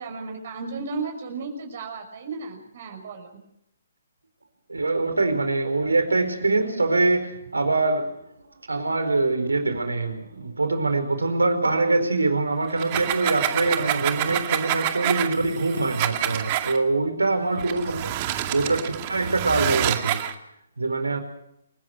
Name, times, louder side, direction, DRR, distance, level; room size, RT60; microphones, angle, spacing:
voice 1, 0.0-3.3 17.7-18.1, right 4 dB, 55° right, 6.1 m, -34 dB
voice 2, 4.7-8.2 8.7-18.1 18.5-20.2 20.8-21.2, right 3 dB, 80° right, 4.8 m, -24 dB
sound 1, 12.7-16.8 17.6-20.3, right 13 dB, 35° right, 2.2 m, -27 dB
29.5 x 19.0 x 6.3 m
figure-of-eight pair, 135°, 0 cm